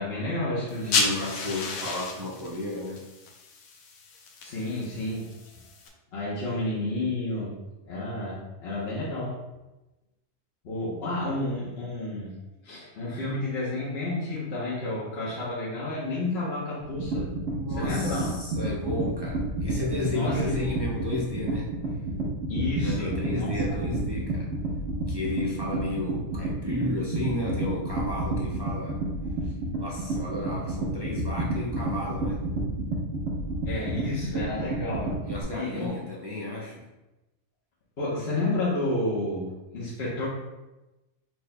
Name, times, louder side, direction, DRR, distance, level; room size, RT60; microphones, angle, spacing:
voice 1, 0.0-1.0 4.4-5.4 6.1-7.6 7.8-9.4 10.6-12.4 12.6-17.3 17.7-18.4 20.1-20.4 22.5-23.8 29.4-29.7 33.6-35.2 35.5-36.0 38.0-40.3, left 2 dB, 50° left, -8 dB, 1.1 m, -31 dB
sound 1, 0.7-5.9, left 4 dB, 85° left, 1.1 m, -33 dB
voice 2, 0.8-3.1 17.5-21.7 22.8-24.5 25.1-29.0 29.8-32.5 35.3-36.9, left 1 dB, 30° right, -5 dB, 0.4 m, -33 dB
sound 2, 16.8-35.4, right 2 dB, 65° right, 1.5 m, -30 dB
4.9 x 4.5 x 2.2 m, 1.0 s
omnidirectional pair, 1.4 m